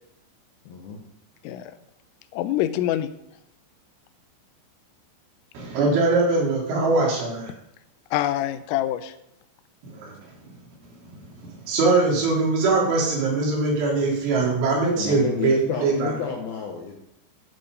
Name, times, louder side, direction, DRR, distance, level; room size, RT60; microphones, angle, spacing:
voice 1, 0.7-1.0 15.0-17.0, left 5 dB, 70° left, 1 dB, 2.3 m, -30 dB
voice 2, 2.3-3.1 8.1-9.1, left 13 dB, 85° left, 12 dB, 3.3 m, -25 dB
voice 3, 5.5-7.5 10.0-10.2 11.1-11.2 11.7-15.5 15.8-16.1, right 3 dB, 70° right, -3 dB, 5.8 m, -22 dB
11.0 x 11.0 x 5.2 m, 0.80 s
omnidirectional pair, 5.8 m